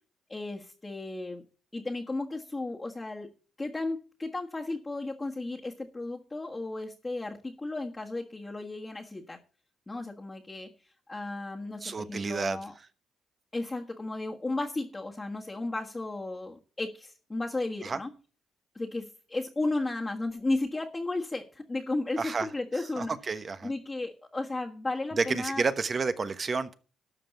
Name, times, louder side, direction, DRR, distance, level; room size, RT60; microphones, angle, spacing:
voice 1, 0.3-1.4 1.7-3.3 3.6-9.4 9.9-10.7 11.1-12.7 13.5-18.1 18.7-23.1 23.6-25.6, left 2 dB, 20° left, -4 dB, 1.6 m, -34 dB
voice 2, 11.8-12.6 17.8-18.0 22.2-22.5 23.0-23.7 25.2-26.8, right 4 dB, 40° right, 11 dB, 1.1 m, -30 dB
12.5 x 5.8 x 7.0 m, 0.38 s
cardioid pair, 90°, 0 cm